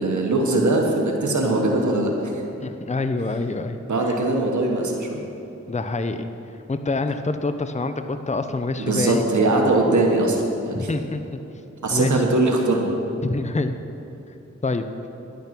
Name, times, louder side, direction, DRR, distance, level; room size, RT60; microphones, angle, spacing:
voice 1, 0.0-2.4 3.9-5.2 8.8-11.0 11.8-13.0, right 2 dB, 85° right, 0 dB, 1.4 m, -21 dB
voice 2, 2.6-3.8 5.7-6.3 6.7-9.2 10.7-11.2 11.9-12.1 13.2-13.8 14.6-14.9, left 3 dB, 25° left, 9 dB, 0.7 m, -26 dB
10.5 x 9.1 x 6.0 m, 3.0 s
wide cardioid pair, 50°, 29 cm